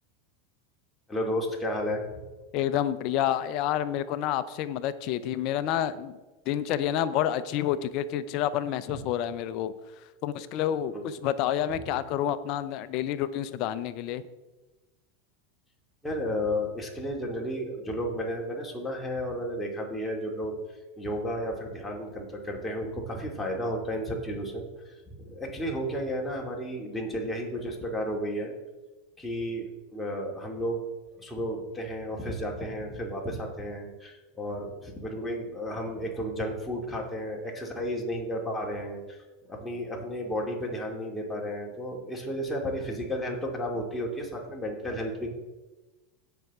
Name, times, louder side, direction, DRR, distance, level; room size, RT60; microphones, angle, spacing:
voice 1, 1.1-2.2 8.9-9.0 10.9-11.1 16.0-20.6 21.0-28.5 29.2-30.8 31.2-39.2 39.5-45.3, equal, 10° left, -1 dB, 2.6 m, -33 dB
voice 2, 2.5-6.2 6.5-9.7 10.2-14.2, left 11 dB, 50° left, 14 dB, 0.7 m, -29 dB
16.5 x 5.8 x 3.7 m, 1.1 s
hypercardioid pair, 85°, 0 cm